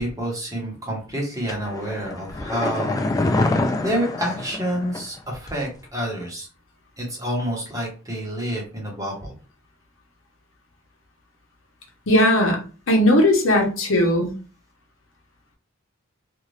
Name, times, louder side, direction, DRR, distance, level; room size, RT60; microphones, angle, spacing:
voice 1, 0.0-3.1 3.4-3.5 3.8-6.5 7.0-9.3, equal, 15° right, -2 dB, 1.1 m, -28 dB
sound 1, 1.5-5.2 5.5-5.6, left 2 dB, 15° left, 0.3 m, -25 dB
voice 2, 12.1-12.6 12.9-14.3, left 1 dB, 70° left, 1 dB, 0.9 m, -17 dB
2.6 x 2.4 x 3.2 m, 0.35 s
head